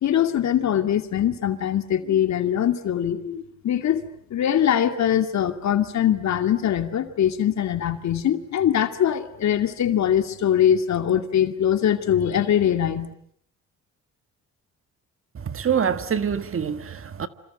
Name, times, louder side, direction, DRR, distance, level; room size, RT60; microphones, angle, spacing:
voice 1, 0.0-4.0 4.3-13.1, left 10 dB, 65° left, 2.5 m, -22 dB
voice 2, 15.4-17.3, right 7 dB, 45° right, 1.7 m, -25 dB
27.5 x 27.0 x 8.0 m
cardioid pair, 90°, 30 cm